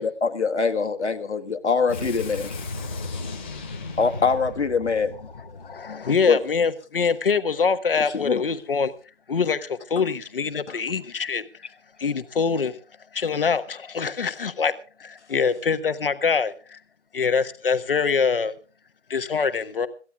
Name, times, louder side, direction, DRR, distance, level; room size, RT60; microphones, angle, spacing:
voice 1, 0.2-2.5 4.0-5.1 6.3-6.4 8.1-8.4, left 5 dB, 70° left, 1.7 m, -23 dB
voice 2, 1.9-6.0, left 3 dB, 10° left, 0.7 m, -35 dB
voice 3, 5.1-8.9 9.3-11.6 12.0-12.8 13.1-14.7 15.0-16.8 17.1-18.5 19.1-19.9, left 5 dB, 50° left, 1.4 m, -24 dB
26.5 x 14.5 x 2.4 m
figure-of-eight pair, 165°, 36 cm